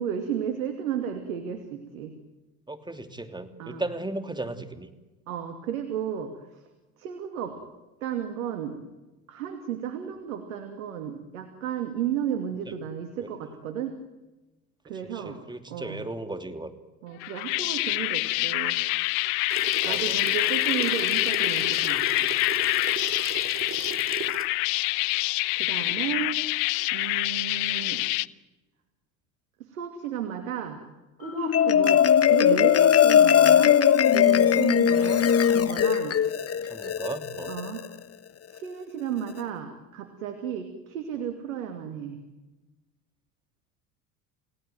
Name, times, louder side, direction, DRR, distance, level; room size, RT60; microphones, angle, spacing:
voice 1, 0.0-2.1 3.6-3.8 5.3-6.6 7.0-7.6 8.0-8.8 9.3-14.0 14.8-15.4 15.7-16.0 17.0-18.8 19.8-22.3 25.6-26.4 26.9-28.0 29.6-30.8 31.2-32.0 32.3-33.8 34.1-36.2 37.5-37.8 38.5-42.2, right 9 dB, 90° right, 7 dB, 2.7 m, -33 dB
voice 2, 2.7-4.9 13.2-13.3 14.9-16.7 19.9-20.2 23.7-23.9 27.7-28.0 32.1-32.3 34.4-35.3 36.6-37.5, right 2 dB, 10° right, 8 dB, 3.1 m, -37 dB
sound 1, 17.2-28.3, left 24 dB, 70° left, 0.9 m, -26 dB
sound 2, 19.5-24.5, right 6 dB, 30° right, 2.6 m, -37 dB
Marimba xylophone, 31.2-37.9, left 9 dB, 35° left, 1.3 m, -20 dB
29.5 x 17.5 x 9.3 m, 1.1 s
hypercardioid pair, 75°, 40 cm